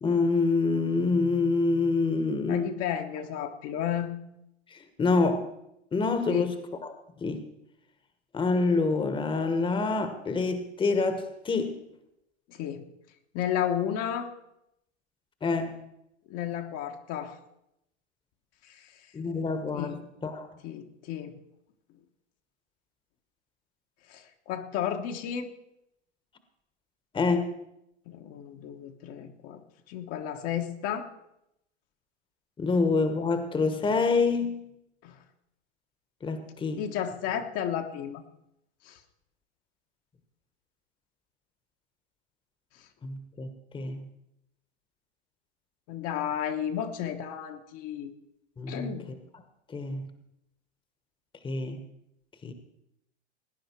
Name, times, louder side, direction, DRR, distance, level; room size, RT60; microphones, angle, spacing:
voice 1, 0.0-2.7 4.7-5.5 5.9-6.6 6.8-6.9 7.2-7.4 8.3-11.8 15.4-15.8 19.1-19.9 20.2-20.5 27.1-27.6 32.6-34.6 36.2-36.8 43.0-44.0 48.6-48.9 49.7-50.1 51.4-51.8 52.4-52.5, left 3 dB, 15° left, 9 dB, 1.3 m, -26 dB
voice 2, 2.5-4.1 6.3-6.5 12.5-12.8 13.3-14.3 16.3-17.4 18.7-18.9 19.7-20.0 20.6-21.4 24.1-25.5 28.1-29.6 29.9-31.1 35.0-35.2 36.8-38.2 38.8-39.0 45.9-48.1 48.7-49.1, left 9 dB, 45° left, 4 dB, 1.3 m, -33 dB
18.0 x 9.8 x 4.6 m, 0.82 s
hypercardioid pair, 105°, 35 cm